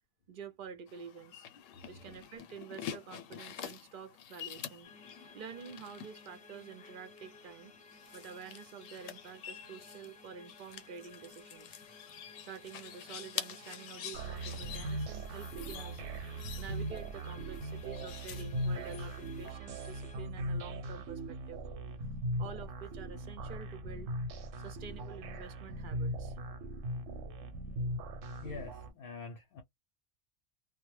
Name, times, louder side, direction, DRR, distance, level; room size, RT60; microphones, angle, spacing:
voice 1, 0.3-1.5 1.9-4.9 5.3-7.7 8.1-11.8 12.4-16.0 16.5-21.6 22.4-24.1 24.6-26.4, right 6 dB, 55° right, 0.6 m, -48 dB
sound 1, 0.9-19.5, left 9 dB, 85° left, 0.9 m, -48 dB
voice 2, 1.7-2.2 28.4-29.6, left 4 dB, 60° left, 0.7 m, -46 dB
sound 2, 4.8-20.2, left 3 dB, 10° left, 0.5 m, -57 dB
sound 3, 14.1-28.9, right 1 dB, 90° right, 1.0 m, -39 dB
2.1 x 2.1 x 3.1 m
omnidirectional pair, 1.3 m